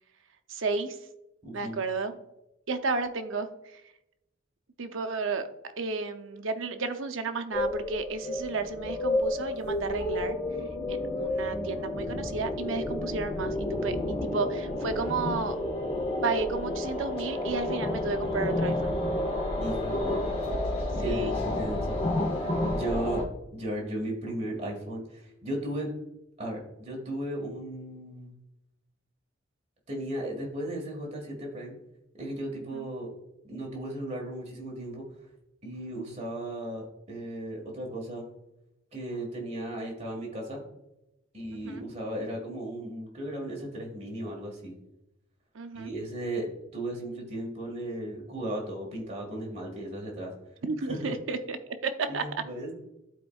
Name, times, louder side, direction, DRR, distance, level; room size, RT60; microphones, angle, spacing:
voice 1, 0.5-1.0 1.5-2.2 2.7-3.8 4.8-5.5 5.8-10.4 10.9-15.6 16.2-18.9 21.0-21.4 32.7-32.9 41.5-41.8 45.5-45.9 50.6-52.2, right 4 dB, 70° right, 8 dB, 0.6 m, -32 dB
voice 2, 1.4-1.8 19.6-20.0 21.0-22.0 22.4-23.2 23.5-25.9 26.4-28.3 29.9-31.7 32.2-33.1 33.4-35.1 35.6-38.2 38.9-40.6 41.3-44.7 45.7-50.3 50.9-51.1 52.1-52.7, right 1 dB, 30° right, -1 dB, 1.6 m, -36 dB
sound 1, 7.5-23.2, left 1 dB, 25° left, 0.8 m, -30 dB
12.0 x 4.3 x 2.3 m, 0.90 s
head